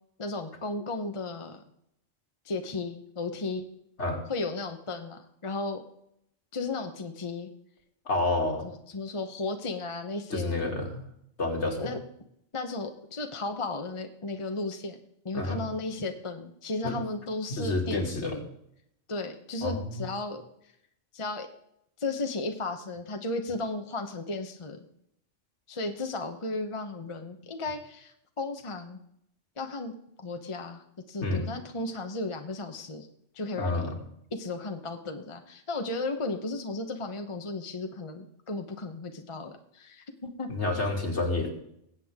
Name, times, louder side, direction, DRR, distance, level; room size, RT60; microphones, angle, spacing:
voice 1, 0.2-1.6 2.4-3.6 4.3-5.8 6.5-7.5 8.6-10.7 11.8-12.0 12.5-15.0 15.2-18.5 19.1-20.4 21.1-21.5 22.0-24.9 25.7-29.0 29.6-33.1 33.3-33.9 34.3-40.5, left 3 dB, 25° left, 5 dB, 0.9 m, -35 dB
voice 2, 8.1-8.7 10.3-11.1 11.4-11.8 15.3-15.6 16.8-17.0 17.6-18.4 19.6-20.1 31.2-31.5 33.6-34.0 40.5-41.5, left 2 dB, 65° left, 1 dB, 2.6 m, -29 dB
20.5 x 8.4 x 3.6 m, 0.75 s
omnidirectional pair, 1.3 m